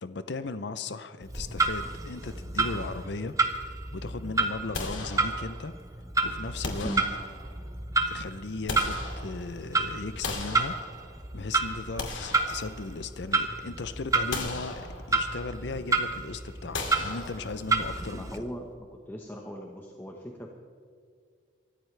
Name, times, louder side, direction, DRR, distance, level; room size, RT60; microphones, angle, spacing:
voice 1, 0.0-3.4 3.9-5.7 6.2-6.9 8.1-10.7 11.3-18.3, left 3 dB, 65° left, 12 dB, 0.6 m, -37 dB
Clock, 1.2-18.4, right 3 dB, 15° right, 0.9 m, -31 dB
sound 1, 4.7-5.8 6.6-7.7 8.3-9.7 10.2-11.3 11.8-13.2 13.6-13.8 14.3-15.4 16.7-17.9, left 3 dB, 85° left, 2.4 m, -37 dB
voice 2, 18.1-20.5, equal, 10° left, 0 dB, 1.1 m, -38 dB
24.0 x 14.0 x 3.3 m, 2.1 s
head